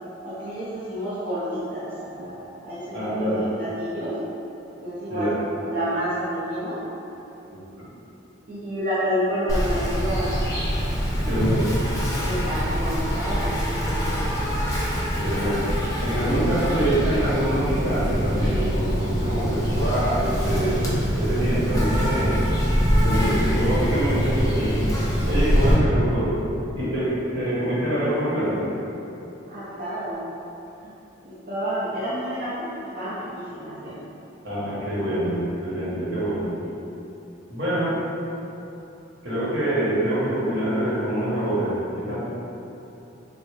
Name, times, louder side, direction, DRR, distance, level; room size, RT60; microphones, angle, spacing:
voice 1, 0.2-4.1 4.8-6.8 8.5-10.4 12.2-14.2 29.5-30.3 30.8-30.9 31.2-34.0 34.7-34.8, equal, 45° right, -13 dB, 0.6 m, -29 dB
voice 2, 2.9-3.5 5.1-5.4 7.5-7.9 11.3-11.8 15.2-15.7 16.0-20.8 21.2-22.4 23.0-25.0 25.3-26.3 26.8-28.6 34.4-36.5 37.5-38.0 39.2-42.2, right 1 dB, 70° right, -9 dB, 1.0 m, -25 dB
Insect, 9.5-25.7, equal, 15° left, 0.4 m, -24 dB
3.3 x 2.1 x 3.2 m, 3.0 s
head